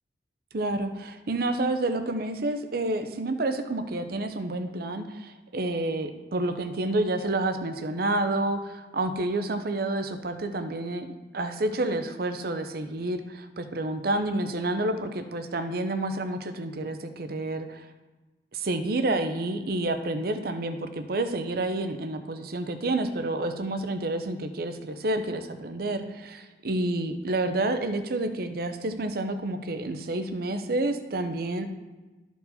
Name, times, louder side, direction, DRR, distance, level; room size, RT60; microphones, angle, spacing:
voice 1, 0.5-11.1 11.3-17.9 18.5-31.6, right 2 dB, 60° right, 8 dB, 0.7 m, -29 dB
13.0 x 4.6 x 4.1 m, 1.2 s
head